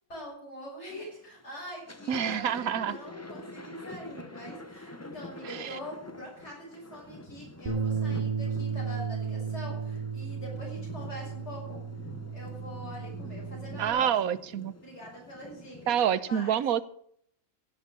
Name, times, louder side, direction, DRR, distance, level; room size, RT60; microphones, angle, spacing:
voice 1, 0.1-11.8 12.3-14.1 14.8-16.0 16.2-16.6, equal, 50° left, -3 dB, 6.5 m, -44 dB
Thunder, 0.9-1.3 1.7-16.1, left 2 dB, 15° left, 0.8 m, -46 dB
voice 2, 2.1-3.0 5.4-5.8 13.8-14.7 15.9-16.8, right 9 dB, 80° right, 16 dB, 1.3 m, -27 dB
Bass guitar, 7.7-13.9, right 5 dB, 30° right, 2.5 m, -34 dB
16.0 x 8.0 x 7.6 m, 0.66 s
omnidirectional pair, 1.5 m